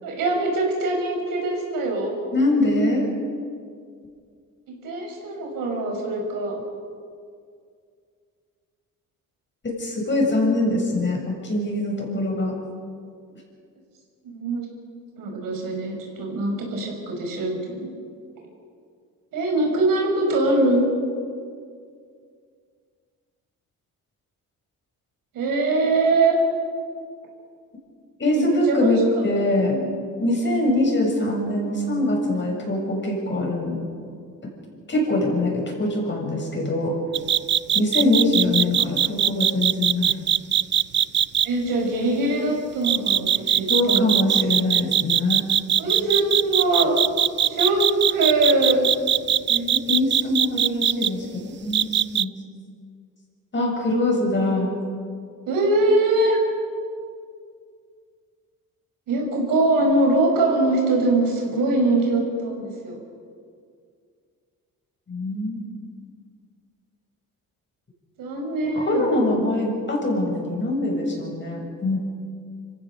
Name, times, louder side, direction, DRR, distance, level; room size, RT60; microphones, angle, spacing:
voice 1, 0.0-2.1 4.8-6.5 14.2-14.7 15.2-17.9 19.3-20.9 25.3-26.4 28.3-29.2 29.7-29.9 41.4-44.2 45.8-46.9 47.5-48.8 54.4-54.6 55.5-56.4 59.1-63.0 68.2-69.1, right 2 dB, 80° right, 1 dB, 5.8 m, -22 dB
voice 2, 2.3-3.1 9.6-12.5 28.2-29.8 30.2-33.9 34.9-36.9 37.7-40.1 43.7-45.4 49.5-52.3 53.5-54.7 65.1-65.7 68.6-72.0, left 1 dB, 35° left, -1 dB, 7.1 m, -23 dB
sound 1, 37.1-41.5 42.8-51.1 51.7-52.2, right 10 dB, 35° right, 0.4 m, -20 dB
26.0 x 15.5 x 7.0 m, 2.2 s
cardioid pair, 90°, 33 cm